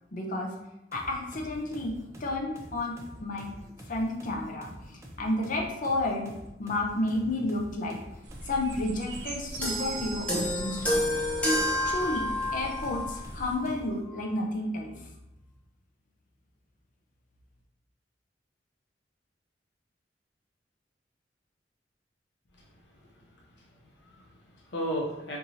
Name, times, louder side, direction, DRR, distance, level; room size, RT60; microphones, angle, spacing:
voice 1, 0.1-0.5 0.9-3.5 3.9-6.3 6.6-8.0 8.4-11.1 11.8-15.1, left 2 dB, 50° left, 1 dB, 0.6 m, -31 dB
sound 1, 0.9-14.0, equal, 15° right, 0.5 m, -47 dB
sound 2, 8.2-13.6, right 1 dB, 85° right, 0.6 m, -42 dB
sound 3, 9.6-13.2 14.1-14.3, left 1 dB, 10° left, 0.8 m, -29 dB
voice 2, 22.5-25.4, equal, 80° left, -2 dB, 0.7 m, -37 dB
4.6 x 2.7 x 2.7 m, 0.88 s
head